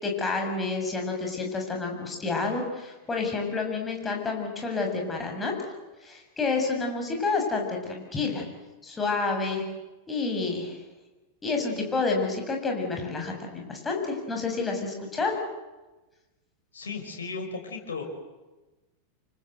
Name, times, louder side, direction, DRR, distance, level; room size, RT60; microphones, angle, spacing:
voice 1, 0.0-5.5 6.0-8.4 8.8-9.6 10.1-10.8 11.4-15.4, left 4 dB, 15° left, 2 dB, 7.0 m, -29 dB
voice 2, 16.7-18.0, left 4 dB, 70° left, 2 dB, 6.2 m, -35 dB
28.5 x 25.0 x 8.0 m, 1.1 s
figure-of-eight pair, 90°, 0 cm